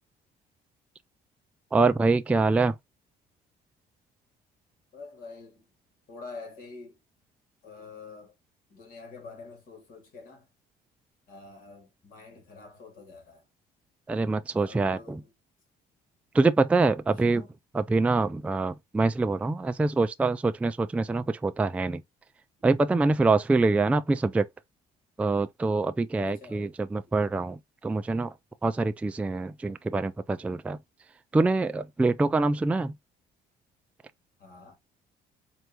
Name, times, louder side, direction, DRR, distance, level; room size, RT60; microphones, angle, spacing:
voice 1, 1.7-2.7 14.1-15.2 16.3-17.4 17.7-22.0 22.6-24.5 25.2-28.3 28.6-30.8 31.3-32.9, right 3 dB, 10° right, 0.3 m, -25 dB
voice 2, 4.9-5.6 6.1-7.0 7.6-8.3 8.7-10.5 11.3-13.4 14.5-15.3 17.2-17.5 26.3-26.7 27.0-27.1 34.4-34.8, left 4 dB, 55° left, 2.2 m, -46 dB
4.5 x 2.6 x 2.9 m
cardioid pair, 110°, 17 cm